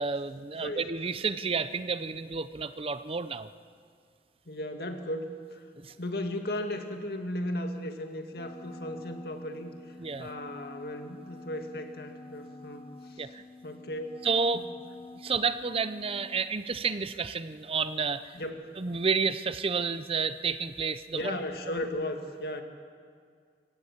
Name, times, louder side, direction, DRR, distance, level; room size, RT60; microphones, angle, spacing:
voice 1, 0.0-3.5 5.8-5.9 10.0-10.3 13.2-13.4 14.2-14.6 15.2-18.3 18.8-21.4, right 5 dB, 30° right, 13 dB, 0.6 m, -30 dB
voice 2, 4.5-5.6 6.0-9.7 10.2-13.4 13.6-14.1 14.5-14.6 18.3-18.7 21.1-22.6, left 1 dB, 60° left, 5 dB, 2.2 m, -36 dB
Wind instrument woodwind instrument, 8.3-16.5, left 3 dB, 25° left, 0.7 m, -48 dB
25.5 x 16.0 x 8.1 m, 2.1 s
head